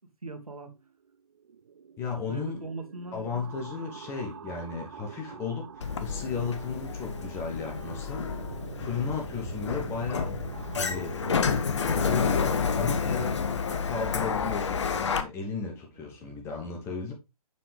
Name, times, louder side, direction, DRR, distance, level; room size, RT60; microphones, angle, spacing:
voice 1, 0.2-0.7 2.3-3.2 4.0-4.1 15.9-16.3, right 3 dB, 70° right, 1.6 m, -40 dB
sound 1, 1.1-13.4, right 7 dB, 45° right, 0.4 m, -43 dB
voice 2, 2.0-2.6 3.1-10.4 10.8-11.1 11.9-17.1, left 5 dB, 15° left, 1.0 m, -35 dB
Sliding door, 5.8-15.2, left 6 dB, 50° left, 0.7 m, -30 dB
6.9 x 5.6 x 3.3 m
figure-of-eight pair, 135°, 19 cm